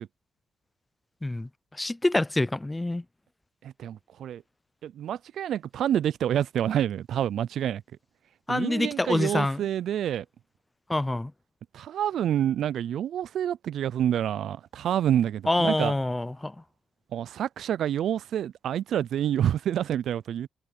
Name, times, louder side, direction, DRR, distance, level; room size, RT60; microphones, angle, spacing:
voice 1, 1.2-3.0 8.5-9.6 10.9-11.3 15.5-16.5, left 2 dB, 15° left, 0.7 m, -26 dB
voice 2, 3.6-4.4 4.8-7.8 8.5-10.2 11.7-15.9 17.1-20.5, right 10 dB, 75° right, 0.4 m, -28 dB
supercardioid pair, 55°, 0 cm